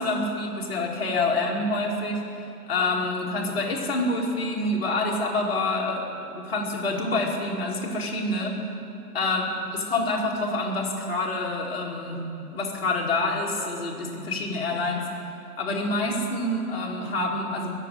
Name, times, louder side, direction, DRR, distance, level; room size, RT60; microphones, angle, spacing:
voice 1, 0.0-8.6 9.1-9.4 9.7-12.2 12.5-15.1 15.6-17.7, left 2 dB, 40° left, -1 dB, 2.4 m, -27 dB
21.5 x 7.4 x 9.0 m, 2.7 s
figure-of-eight pair, 150°, 48 cm